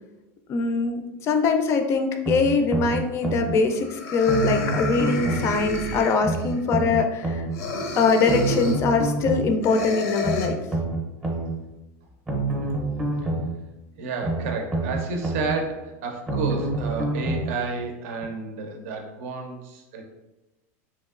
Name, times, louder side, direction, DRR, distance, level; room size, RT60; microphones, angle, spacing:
voice 1, 0.5-7.4 7.9-10.6, left 4 dB, 35° left, 6 dB, 0.3 m, -22 dB
sound 1, 2.3-3.5 4.3-5.5 6.2-7.5 8.3-9.5 10.2-11.5 12.3-13.5 14.2-15.5 16.3-17.5 18.2-18.3, right 2 dB, 15° right, 0.6 m, -27 dB
sound 2, 3.3-3.4 3.8-6.6 7.5-8.9 9.6-10.5, left 2 dB, 85° left, 0.5 m, -31 dB
voice 2, 14.0-20.0, right 3 dB, 70° right, 4 dB, 0.6 m, -31 dB
3.0 x 2.6 x 2.4 m, 1.0 s
supercardioid pair, 135°, 8 cm